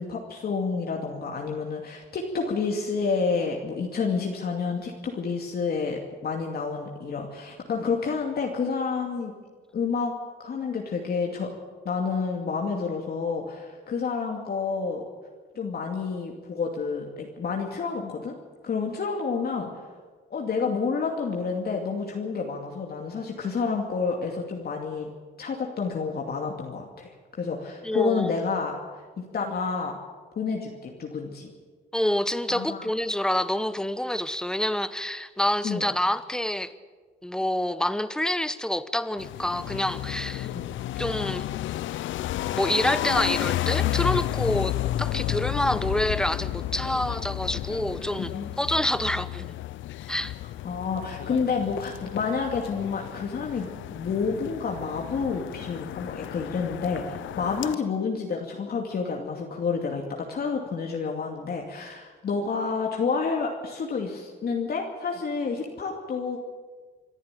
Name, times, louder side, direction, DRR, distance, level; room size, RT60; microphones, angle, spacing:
voice 1, 0.0-9.3 9.7-10.1 10.4-11.5 11.8-15.0 15.5-18.3 18.6-19.7 20.3-25.1 25.4-28.8 29.2-30.0 30.3-31.5 32.5-32.9 35.6-35.9 40.4-40.7 48.3-48.5 50.6-66.4, left 5 dB, 50° left, 0 dB, 2.5 m, -29 dB
voice 2, 27.8-28.6 31.9-36.7 37.2-40.5 41.0-41.5 42.5-48.3 48.6-49.5 50.1-50.3, left 1 dB, 5° left, 14 dB, 1.0 m, -27 dB
sound 1, 39.2-57.8, left 14 dB, 75° left, 0.5 m, -32 dB
26.0 x 11.0 x 9.2 m, 1.5 s
cardioid pair, 90°, 20 cm